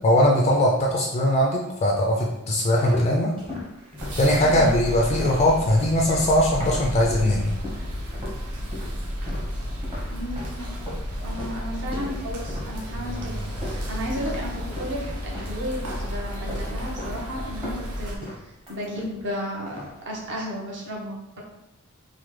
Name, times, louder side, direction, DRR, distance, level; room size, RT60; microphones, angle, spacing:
voice 1, 0.0-3.3 4.2-7.5, left 1 dB, 30° left, -1 dB, 0.3 m, -20 dB
sound 1, 2.5-7.3 7.6-8.4 8.7-15.0 15.3-16.1 16.4-17.2 17.5-19.3 19.7-20.0, left 1 dB, 25° right, 0.8 m, -38 dB
sound 2, 4.0-18.2, equal, 90° right, 0.7 m, -32 dB
voice 2, 10.1-10.7 11.2-21.4, equal, 55° right, -2 dB, 0.8 m, -34 dB
3.0 x 2.1 x 3.1 m, 0.89 s
head